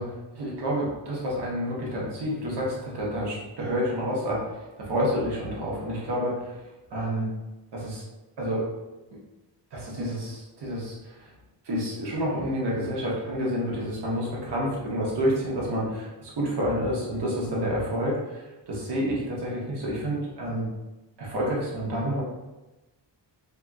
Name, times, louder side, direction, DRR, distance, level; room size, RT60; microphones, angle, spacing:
voice 1, 0.0-6.6 6.9-7.3 7.7-8.0 8.4-8.7 9.7-11.3 11.6-20.7 21.2-22.2, equal, 65° right, -4 dB, 1.0 m, -29 dB
2.9 x 2.8 x 2.3 m, 1.1 s
wide cardioid pair, 150°, 43 cm